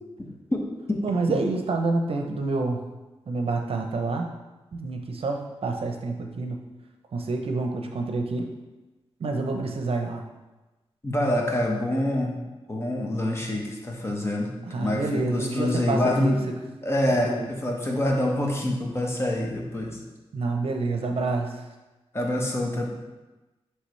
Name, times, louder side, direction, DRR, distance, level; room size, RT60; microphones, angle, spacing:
voice 1, 0.0-0.6 0.9-1.0 11.0-12.3 12.7-16.5 16.8-20.0 22.1-22.9, left 1 dB, 25° left, -1 dB, 1.2 m, -26 dB
voice 2, 1.0-2.8 3.3-4.3 4.7-6.6 7.1-8.5 9.2-10.2 14.7-16.5 17.2-17.5 20.3-21.6, right 3 dB, 65° right, 3 dB, 0.7 m, -28 dB
9.7 x 3.3 x 3.2 m, 1.1 s
wide cardioid pair, 95°, 10 cm